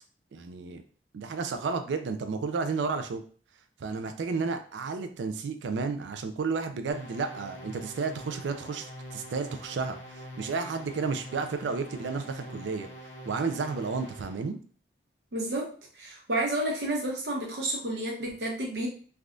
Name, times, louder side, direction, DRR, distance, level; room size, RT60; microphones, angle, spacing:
voice 1, 0.3-0.8 1.1-3.2 3.8-12.9 13.3-14.6, right 4 dB, 85° right, 8 dB, 0.4 m, -32 dB
sound 1, 6.9-14.5, equal, 90° left, 0.9 m, -44 dB
voice 2, 15.3-15.7 15.9-18.9, right 1 dB, 70° right, -2 dB, 1.0 m, -30 dB
3.3 x 2.3 x 2.5 m, 0.43 s
head